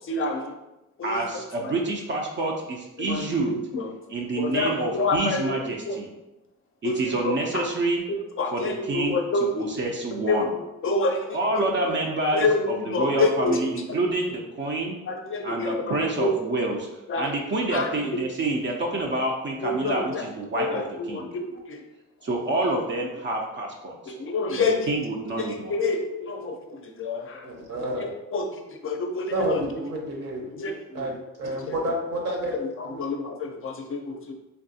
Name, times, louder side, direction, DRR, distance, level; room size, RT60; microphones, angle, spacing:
voice 1, 0.0-0.5 1.0-1.7 3.0-3.9 4.4-6.0 6.8-7.7 8.1-9.7 10.1-12.0 12.3-14.0 15.1-16.4 17.1-17.3 17.7-18.0 19.6-20.2 20.6-21.8 24.1-24.9 25.4-27.5 28.0-29.6 30.5-31.2 31.6-31.8 32.5-34.3, left 3 dB, 45° left, 3 dB, 0.5 m, -28 dB
voice 2, 1.0-3.5 4.1-6.1 6.8-8.0 8.5-9.2 9.6-10.4 11.3-12.4 12.9-15.0 15.4-16.9 17.2-20.8 21.1-21.3 22.2-24.1 24.6-25.7, right 2 dB, 40° right, 0 dB, 0.5 m, -27 dB
voice 3, 27.4-28.1 29.3-30.5 30.9-32.6 32.8-33.1, right 1 dB, 55° right, 0 dB, 0.9 m, -29 dB
3.4 x 2.3 x 2.6 m, 0.96 s
cardioid pair, 90°, 30 cm